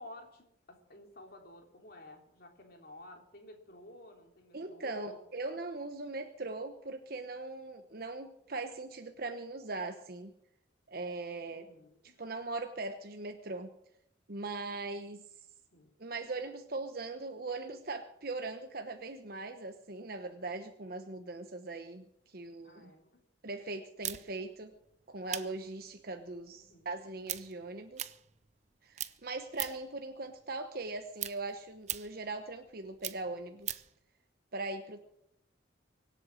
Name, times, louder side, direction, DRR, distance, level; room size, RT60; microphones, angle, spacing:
voice 1, 0.0-5.2 11.5-12.1 15.7-15.9 22.6-23.2 24.0-24.3 26.5-26.9, left 1 dB, 55° left, 3 dB, 3.4 m, -53 dB
voice 2, 4.5-10.3 10.9-11.6 12.2-13.7 14.3-15.2 16.0-22.9 23.4-24.7 25.1-28.1 28.8-33.8 34.5-35.0, right 3 dB, 55° right, 6 dB, 1.1 m, -40 dB
sound 1, 24.0-28.7 28.9-30.0 30.3-34.0, right 12 dB, 40° right, 0.7 m, -41 dB
24.0 x 8.2 x 6.4 m, 0.78 s
head